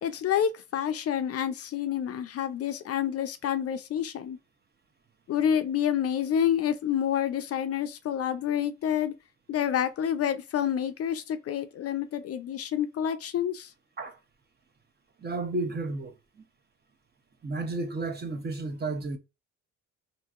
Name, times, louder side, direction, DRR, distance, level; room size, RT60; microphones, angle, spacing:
voice 1, 0.0-4.4 5.3-9.1 9.5-13.7, left 9 dB, 50° left, 0.4 m, -28 dB
voice 2, 15.2-16.4 17.4-19.2, right 2 dB, 35° right, 0.7 m, -32 dB
2.8 x 2.6 x 2.3 m
cardioid pair, 90°, 30 cm